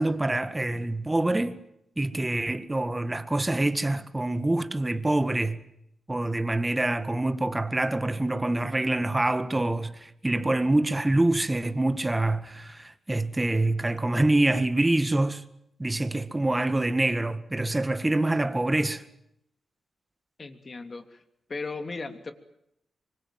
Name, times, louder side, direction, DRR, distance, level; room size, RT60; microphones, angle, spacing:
voice 1, 0.0-1.6 2.0-5.6 6.1-15.4 15.8-19.0, right 2 dB, 15° right, 1.9 m, -26 dB
voice 2, 20.4-21.2 21.5-22.3, left 3 dB, 40° left, 3.1 m, -36 dB
25.5 x 25.0 x 7.6 m
cardioid pair, 95°, 0 cm